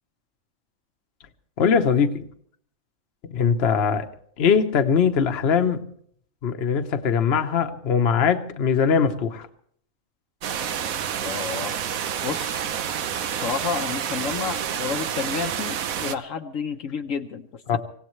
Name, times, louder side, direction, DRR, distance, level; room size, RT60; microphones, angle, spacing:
voice 1, 1.6-2.2 3.3-4.1 4.4-5.8 6.4-9.5 17.7-17.8, left 6 dB, 50° left, 8 dB, 1.2 m, -21 dB
sound 1, 10.4-16.2, right 8 dB, 85° right, 1.3 m, -29 dB
voice 2, 11.2-11.8 12.2-12.6 13.3-17.8, left 6 dB, 70° left, 5 dB, 1.2 m, -30 dB
25.5 x 17.0 x 3.2 m, 0.64 s
omnidirectional pair, 1.4 m